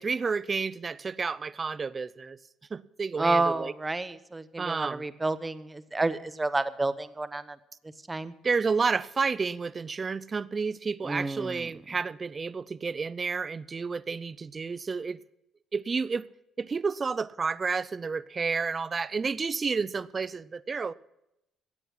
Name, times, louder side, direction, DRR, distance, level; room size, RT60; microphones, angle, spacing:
voice 1, 0.0-2.4 2.7-3.7 4.6-5.0 8.4-15.2 15.7-16.3 16.6-20.9, right 5 dB, 35° right, 0.5 m, -30 dB
voice 2, 3.2-7.6 8.1-8.3 11.0-11.7, right 2 dB, 20° right, 0.9 m, -30 dB
14.5 x 9.1 x 5.8 m
supercardioid pair, 75°, 0 cm